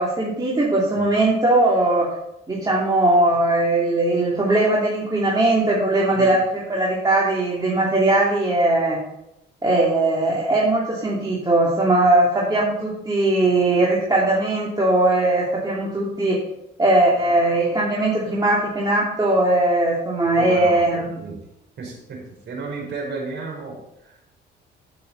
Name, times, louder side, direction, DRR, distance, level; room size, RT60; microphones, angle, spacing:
voice 1, 0.0-2.1 2.5-9.0 9.6-16.4 16.8-21.2, right 2 dB, 20° right, -5 dB, 2.8 m, -19 dB
voice 2, 20.4-21.4 21.8-23.8 24.0-24.2, right 3 dB, 65° right, 0 dB, 4.6 m, -33 dB
14.5 x 7.0 x 4.1 m, 0.85 s
cardioid pair, 90°, 20 cm